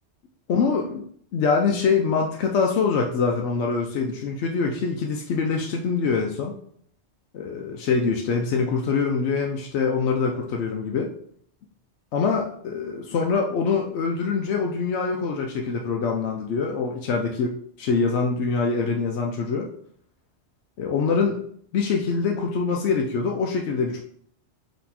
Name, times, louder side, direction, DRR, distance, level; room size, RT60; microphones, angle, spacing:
voice 1, 0.5-1.1 1.3-6.5 7.3-11.1 12.1-19.7 20.8-21.4 21.7-24.0, left 5 dB, 75° left, 1 dB, 0.9 m, -24 dB
4.3 x 3.0 x 4.1 m, 0.63 s
omnidirectional pair, 1.2 m